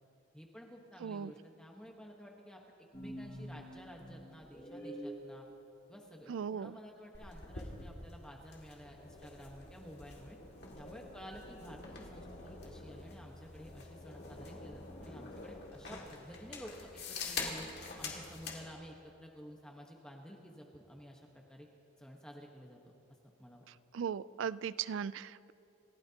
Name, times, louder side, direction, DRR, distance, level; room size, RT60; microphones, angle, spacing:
voice 1, 0.3-2.6 3.0-5.4 5.9-10.4 10.8-17.7 18.0-21.7 22.0-22.8 23.4-23.6, equal, 5° left, 0 dB, 1.2 m, -52 dB
voice 2, 1.0-1.3 6.3-6.8 23.9-25.5, right 7 dB, 75° right, 18 dB, 0.4 m, -38 dB
sound 1, 2.9-5.2, right 1 dB, 25° left, 3.9 m, -46 dB
sound 2, 7.1-18.6, left 3 dB, 55° left, 2.3 m, -46 dB
28.5 x 16.0 x 2.9 m, 2.7 s
head